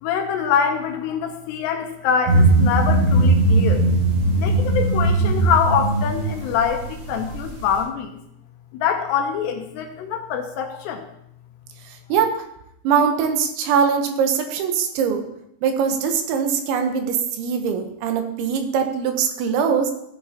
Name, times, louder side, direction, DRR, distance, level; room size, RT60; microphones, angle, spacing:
voice 1, 0.0-3.9 4.4-8.2 8.7-11.1, left 7 dB, 75° left, 5 dB, 2.8 m, -24 dB
sound 1, 2.3-7.8, right 2 dB, 60° right, 4.4 m, -19 dB
voice 2, 12.1-12.4 12.8-15.2 15.6-19.9, right 6 dB, 80° right, 6 dB, 3.3 m, -22 dB
16.0 x 8.4 x 2.9 m, 0.78 s
omnidirectional pair, 5.3 m